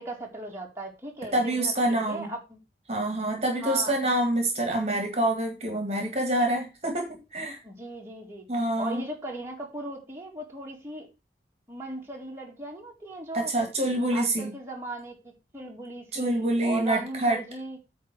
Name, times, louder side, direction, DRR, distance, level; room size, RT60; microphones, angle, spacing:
voice 1, 0.0-2.6 3.6-3.9 7.6-8.4 8.8-11.1 11.7-13.5 14.1-17.8, right 2 dB, 15° right, -2 dB, 2.1 m, -38 dB
voice 2, 1.3-2.3 2.9-7.6 8.5-9.0 13.3-14.5 16.1-17.4, right 1 dB, 35° right, 3 dB, 1.9 m, -26 dB
9.2 x 3.8 x 6.1 m, 0.28 s
head